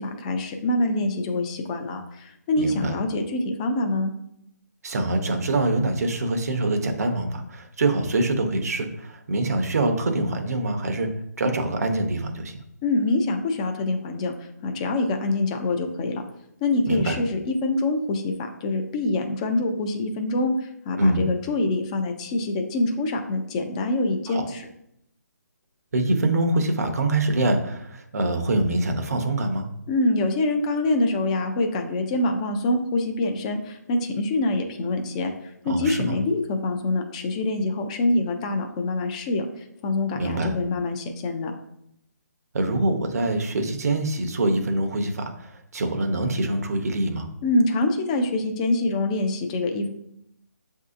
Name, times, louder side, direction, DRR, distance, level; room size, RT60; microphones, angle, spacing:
voice 1, 0.0-4.1 12.8-14.3 14.6-16.2 16.6-24.6 29.9-35.3 35.6-39.5 39.8-41.5 47.4-49.9, left 2 dB, 20° left, 5 dB, 0.4 m, -25 dB
voice 2, 2.6-2.9 4.8-11.1 11.4-12.6 16.9-17.2 21.0-21.2 24.3-24.5 25.9-29.7 35.7-36.1 40.1-40.5 42.5-47.3, right 2 dB, 60° right, 6 dB, 0.7 m, -24 dB
7.4 x 2.7 x 2.5 m, 0.78 s
figure-of-eight pair, 150°, 10 cm